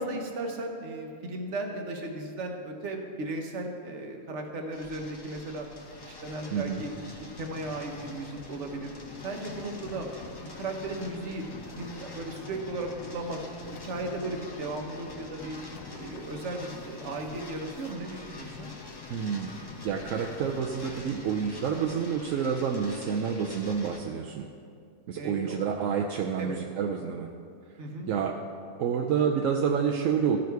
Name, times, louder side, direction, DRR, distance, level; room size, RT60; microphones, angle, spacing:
voice 1, 0.0-5.7 6.0-6.9 7.3-8.9 9.2-10.1 10.4-11.4 11.7-13.4 13.8-15.6 15.9-18.7 25.2-25.6 26.4-26.6 27.8-28.1, right 2 dB, 50° right, 3 dB, 1.2 m, -36 dB
sound 1, 4.7-24.0, left 2 dB, 25° left, 0.5 m, -48 dB
sound 2, 5.5-22.2, left 6 dB, 75° left, 1.1 m, -46 dB
voice 2, 19.1-19.5 19.8-24.5 25.1-27.3 28.1-28.4 28.8-30.4, right 7 dB, 70° right, 2 dB, 0.8 m, -28 dB
14.5 x 5.0 x 4.6 m, 2.3 s
omnidirectional pair, 1.7 m